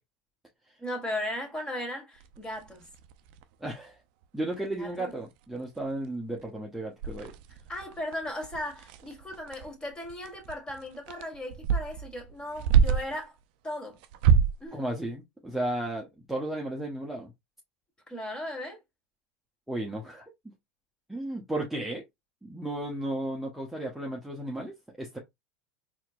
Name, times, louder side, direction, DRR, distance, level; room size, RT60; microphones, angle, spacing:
voice 1, 0.8-2.9 4.8-5.1 7.7-13.4 13.6-14.0 14.6-14.8 18.1-18.8, left 1 dB, 15° left, 1.8 m, -37 dB
sound 1, 2.2-3.7 4.2-4.3 4.5-4.8 5.1-5.2 5.6-6.0 6.4-6.5 7.0-13.2 14.0-14.7, right 7 dB, 65° right, 0.5 m, -27 dB
voice 2, 3.6-4.0 4.3-7.3 14.7-17.3 19.7-20.5 21.1-22.0 22.4-25.2, right 1 dB, 5° right, 1.0 m, -34 dB
4.2 x 3.0 x 2.4 m
hypercardioid pair, 100°, 5 cm